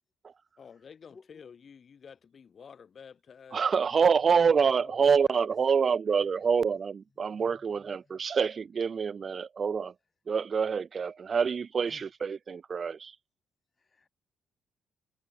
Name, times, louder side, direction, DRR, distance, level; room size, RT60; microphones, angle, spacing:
voice 1, 0.6-5.4 5.8-5.9, left 6 dB, 45° left, 4.5 m, -52 dB
voice 2, 3.5-9.9 10.3-13.1, right 6 dB, 45° right, 0.4 m, -26 dB
voice 3, 7.2-8.3 11.8-12.1 13.8-14.1, left 4 dB, 30° left, 5.0 m, -58 dB
cardioid pair, 90°, 0 cm